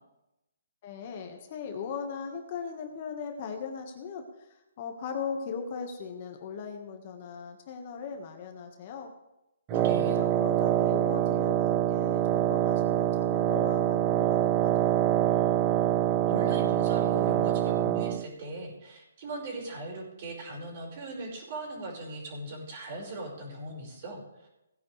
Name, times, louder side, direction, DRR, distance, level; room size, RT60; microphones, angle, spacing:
voice 1, 0.8-9.1 9.7-15.0, left 6 dB, 35° left, 4 dB, 1.4 m, -39 dB
Wind instrument woodwind instrument, 9.7-18.3, right 12 dB, 20° right, 0.4 m, -25 dB
voice 2, 9.7-10.2 16.3-24.5, right 2 dB, 35° right, -1 dB, 5.1 m, -39 dB
18.0 x 9.6 x 3.3 m, 0.91 s
hypercardioid pair, 160°, 0 cm